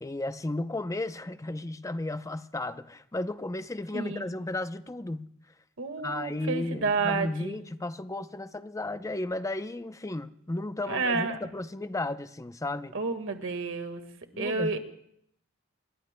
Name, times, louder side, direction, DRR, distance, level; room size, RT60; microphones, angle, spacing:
voice 1, 0.0-5.3 6.0-12.9 14.3-14.8, left 2 dB, 15° left, 12 dB, 0.6 m, -34 dB
voice 2, 5.8-7.6 10.9-11.4 12.9-14.0 14.4-14.8, right 4 dB, 65° right, 7 dB, 1.6 m, -30 dB
28.0 x 22.0 x 2.2 m, 0.70 s
head